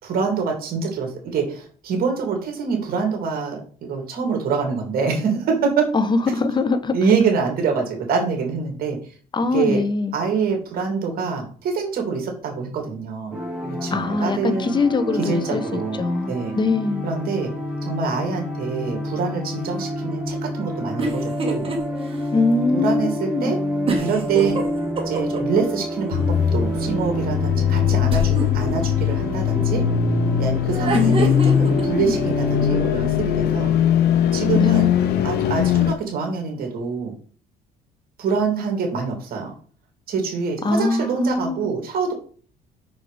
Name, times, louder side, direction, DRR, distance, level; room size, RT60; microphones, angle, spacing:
voice 1, 0.0-5.9 6.9-9.0 9.5-9.8 10.1-14.8 15.2-16.0 16.3-16.5 17.0-17.5 17.8-21.7 22.7-23.6 24.0-24.6 25.0-29.9 30.4-31.3 31.6-33.7 34.3-34.9 35.2-37.1 38.2-39.5 40.1-42.1, right 5 dB, 60° right, 3.0 m, -25 dB
voice 2, 5.9-6.9 9.3-10.2 13.9-17.1 22.3-23.5 30.9-32.2 34.6-35.3 40.6-41.7, left 3 dB, 25° left, 1.0 m, -23 dB
sound 1, 13.3-32.9, equal, 5° right, 3.6 m, -28 dB
sound 2, 21.0-21.8 22.2-22.3 23.9-25.6 28.1-28.7 30.7-31.8, right 3 dB, 35° right, 2.0 m, -26 dB
sound 3, 26.1-35.9, left 9 dB, 70° left, 0.8 m, -20 dB
6.4 x 6.3 x 5.1 m
cardioid pair, 110°, 17 cm